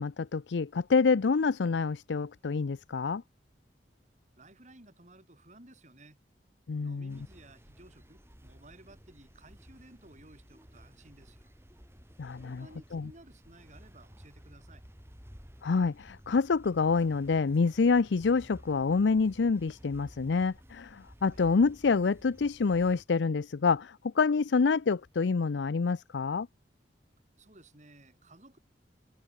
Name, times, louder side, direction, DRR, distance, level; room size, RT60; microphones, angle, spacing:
voice 1, 0.0-3.2 6.7-7.2 12.2-12.7 12.9-13.1 15.6-26.5, left 4 dB, 85° left, 0.5 m, -27 dB
voice 2, 4.4-6.2 6.8-11.5 12.4-14.8 21.3-21.4 27.4-28.6, right 2 dB, 40° right, 6.0 m, -56 dB
sound 1, 7.1-23.1, equal, 15° right, 5.2 m, -54 dB
head